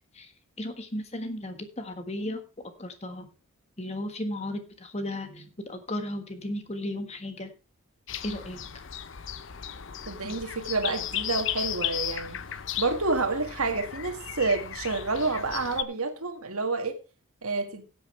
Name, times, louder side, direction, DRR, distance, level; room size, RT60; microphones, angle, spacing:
voice 1, 0.6-2.4 2.8-3.3 3.8-7.5 8.2-8.6 10.2-10.4, left 1 dB, 30° left, 7 dB, 1.5 m, -35 dB
sound 1, 8.1-15.8, left 10 dB, 60° left, 0.7 m, -35 dB
voice 2, 10.1-12.4 12.8-17.0 17.4-17.8, right 3 dB, 85° right, 6 dB, 1.9 m, -29 dB
16.5 x 8.6 x 3.3 m, 0.31 s
head